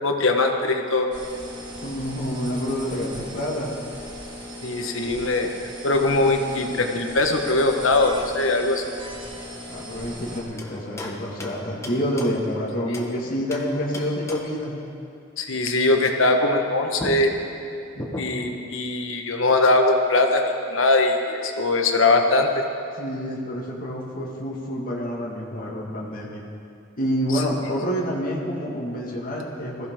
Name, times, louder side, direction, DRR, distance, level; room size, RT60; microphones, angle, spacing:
voice 1, 0.0-1.1 4.6-5.5 5.8-8.8 12.9-13.1 15.4-17.3 18.2-22.6 27.3-27.4, left 2 dB, 90° left, 3 dB, 1.5 m, -21 dB
sound 1, 1.1-10.4, equal, 25° right, 2.7 m, -38 dB
voice 2, 1.8-3.7 9.7-14.8 18.0-18.2 23.0-26.4 27.0-29.9, equal, 45° left, -3 dB, 2.1 m, -28 dB
sound 2, 10.6-13.2 13.5-14.7 16.6-16.7 17.0-18.6, left 1 dB, 15° left, 1.3 m, -37 dB
21.0 x 15.0 x 3.8 m, 2.5 s
head